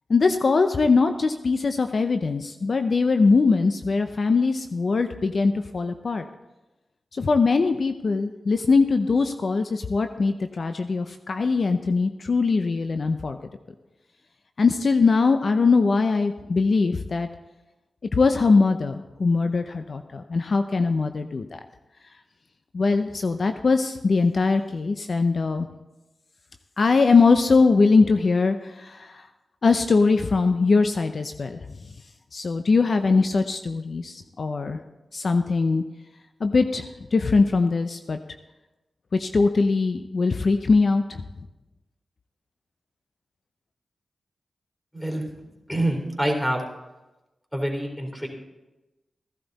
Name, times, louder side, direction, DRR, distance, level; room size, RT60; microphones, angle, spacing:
voice 1, 0.1-6.2 7.1-13.4 14.6-17.3 18.1-21.6 22.7-25.7 26.8-29.3 29.6-31.6 32.3-34.8 35.1-35.8 36.4-38.2 39.1-41.2, left 4 dB, 60° left, 8 dB, 0.6 m, -21 dB
voice 2, 44.9-45.3 45.7-46.6 47.5-48.3, right 1 dB, 5° left, 1 dB, 3.5 m, -26 dB
15.5 x 11.5 x 4.1 m, 1.0 s
cardioid pair, 50°, 0 cm